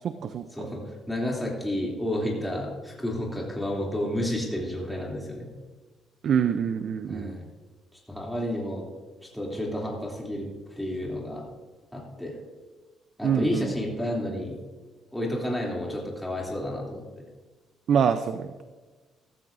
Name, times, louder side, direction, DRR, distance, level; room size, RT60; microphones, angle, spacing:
voice 1, 0.0-0.7 6.2-7.4 13.2-13.7 17.9-18.5, right 7 dB, 60° right, 10 dB, 0.6 m, -25 dB
voice 2, 0.5-5.5 7.1-7.5 8.1-8.8 9.2-10.5 10.8-11.4 11.9-12.4 13.2-14.6 15.1-17.0, left 1 dB, 5° left, -3 dB, 3.0 m, -31 dB
15.0 x 13.5 x 2.7 m, 1.3 s
cardioid pair, 115°, 0 cm